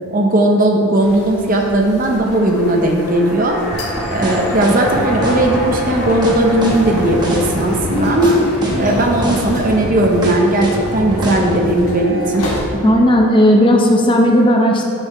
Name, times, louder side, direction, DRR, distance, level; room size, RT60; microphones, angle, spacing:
voice 1, 0.1-3.6 4.1-8.4 8.8-12.5 12.8-12.9, right 1 dB, 40° right, 2 dB, 0.7 m, -16 dB
sound 1, 1.0-12.6, left 1 dB, 85° left, 1.3 m, -30 dB
sound 2, 1.9-12.3 12.6-12.7, equal, ahead, 1.5 m, -29 dB
sound 3, 3.7-11.6, right 1 dB, 20° right, 1.0 m, -23 dB
voice 2, 12.8-14.8, equal, 20° left, 1 dB, 0.7 m, -12 dB
7.9 x 6.6 x 4.2 m, 2.5 s
head